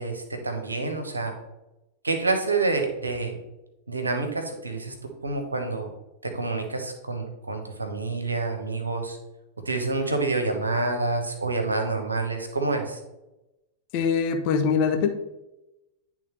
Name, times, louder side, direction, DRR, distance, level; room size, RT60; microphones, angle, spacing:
voice 1, 0.0-1.3 2.0-3.4 3.9-4.9 5.2-5.9 6.2-9.2 9.7-13.0, right 3 dB, 80° right, 5 dB, 1.0 m, -27 dB
voice 2, 13.9-15.1, left 6 dB, 45° left, 5 dB, 0.8 m, -23 dB
10.0 x 3.5 x 3.2 m, 0.96 s
figure-of-eight pair, 90°, 0 cm